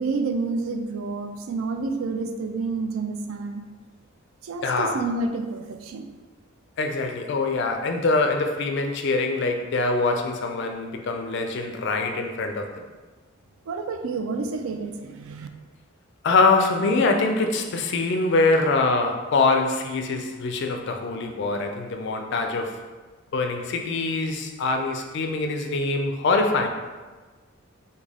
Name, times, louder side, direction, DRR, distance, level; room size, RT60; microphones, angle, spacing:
voice 1, 0.0-3.6 4.4-6.1 13.7-15.5, right 3 dB, 75° right, 6 dB, 0.3 m, -29 dB
voice 2, 4.6-5.0 6.8-12.8 16.2-22.8 23.3-26.7, left 3 dB, 55° left, 4 dB, 0.3 m, -24 dB
3.5 x 2.2 x 3.3 m, 1.3 s
head